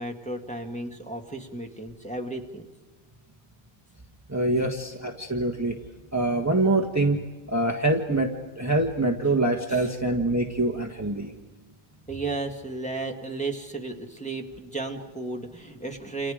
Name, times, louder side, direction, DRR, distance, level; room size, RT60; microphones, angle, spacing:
voice 1, 0.0-2.7 9.2-9.3 9.7-9.9 12.1-16.3, right 2 dB, 5° left, 3 dB, 1.9 m, -34 dB
voice 2, 4.3-5.8 6.1-7.2 7.5-11.3, right 2 dB, 15° right, 2 dB, 1.5 m, -25 dB
29.0 x 29.0 x 5.1 m, 1.3 s
omnidirectional pair, 1.1 m